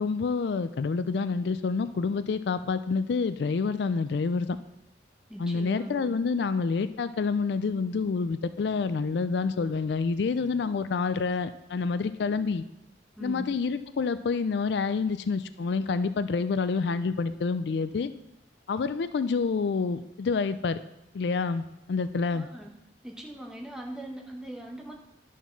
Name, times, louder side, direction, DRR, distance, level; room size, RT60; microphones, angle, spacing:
voice 1, 0.0-4.6 5.4-12.6 13.2-18.1 18.7-20.8 21.1-22.5, left 4 dB, 70° left, 13 dB, 0.4 m, -28 dB
voice 2, 5.3-6.2 13.2-13.5 22.3-22.7 23.0-24.9, right 1 dB, 5° right, 0 dB, 1.0 m, -40 dB
11.0 x 4.5 x 5.8 m, 0.87 s
head